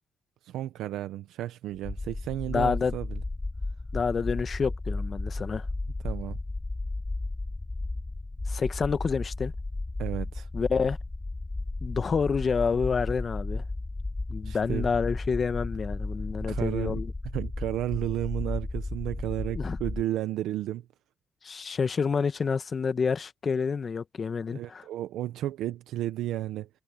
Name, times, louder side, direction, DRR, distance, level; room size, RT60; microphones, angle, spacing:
voice 1, 0.4-3.2 6.0-6.4 10.0-10.5 14.4-14.9 16.5-17.0 17.3-20.8 24.5-26.7, right 13 dB, 85° right, 0.8 m, -33 dB
sound 1, 1.7-20.0, left 2 dB, 20° left, 2.3 m, -34 dB
voice 2, 2.5-2.9 3.9-5.7 8.5-9.5 10.5-11.0 11.8-13.6 14.3-17.1 19.5-19.8 21.4-24.8, left 5 dB, 40° left, 1.2 m, -28 dB
cardioid pair, 90°, 0 cm